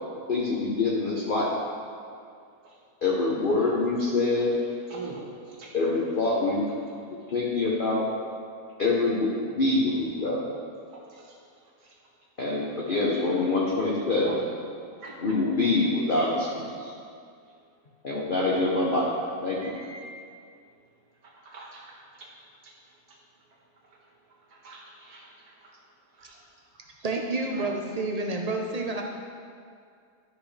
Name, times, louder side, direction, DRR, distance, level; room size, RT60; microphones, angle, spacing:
voice 1, 0.3-1.5 3.0-4.5 5.7-6.7 7.1-8.1 8.8-10.5 12.4-14.3 15.2-16.9 18.0-19.1 19.4-19.7, left 3 dB, 40° left, -5 dB, 1.0 m, -25 dB
voice 2, 4.9-5.7 10.9-11.4 11.8-12.0 14.3-14.4 15.0-15.4 19.6-20.1 21.2-22.3 22.6-22.7 23.1-23.2 24.5-25.8 26.1-26.4 27.5-27.7, right 3 dB, 80° right, -3 dB, 1.9 m, -44 dB
voice 3, 27.0-29.0, right 2 dB, 45° right, 1 dB, 0.5 m, -29 dB
12.5 x 5.9 x 3.3 m, 2.3 s
omnidirectional pair, 1.6 m